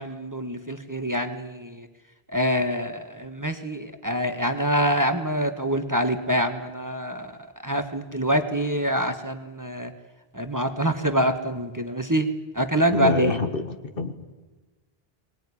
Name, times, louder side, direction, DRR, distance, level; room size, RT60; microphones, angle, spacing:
voice 1, 0.0-1.9 2.3-9.9 10.3-13.4, equal, 20° right, 7 dB, 1.4 m, -25 dB
voice 2, 12.9-14.1, left 4 dB, 60° left, 8 dB, 1.9 m, -26 dB
23.0 x 20.0 x 9.9 m, 1.2 s
omnidirectional pair, 1.0 m